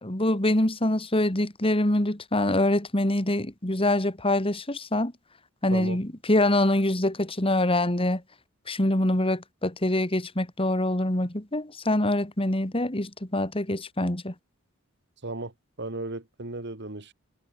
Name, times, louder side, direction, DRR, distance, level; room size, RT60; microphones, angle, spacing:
voice 1, 0.0-5.1 5.6-8.2 8.7-14.3, left 1 dB, 25° left, 2.5 m, -25 dB
voice 2, 15.8-17.1, right 2 dB, 55° right, 2.4 m, -35 dB
head